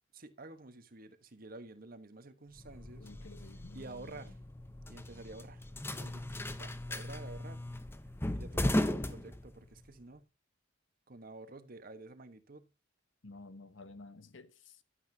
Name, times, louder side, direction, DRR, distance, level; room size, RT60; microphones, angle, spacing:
voice 1, 0.1-3.1 3.7-4.4 4.9-5.7 6.0-6.2 6.6-7.6 8.3-10.3 11.1-12.7, right 2 dB, 50° right, 1.3 m, -50 dB
sound 1, 2.6-9.9, left 1 dB, 10° left, 0.8 m, -37 dB
voice 2, 3.0-4.3 13.2-14.8, left 3 dB, 70° left, 1.2 m, -52 dB
11.5 x 9.5 x 2.8 m
head